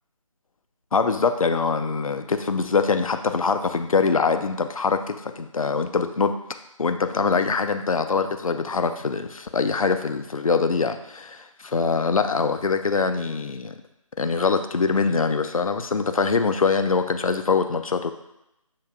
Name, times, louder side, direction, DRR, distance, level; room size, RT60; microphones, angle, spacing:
voice 1, 0.9-6.3 6.8-13.7 14.2-18.1, left 5 dB, 75° left, 8 dB, 0.4 m, -23 dB
7.3 x 2.5 x 2.3 m, 0.88 s
figure-of-eight pair, 155°, 18 cm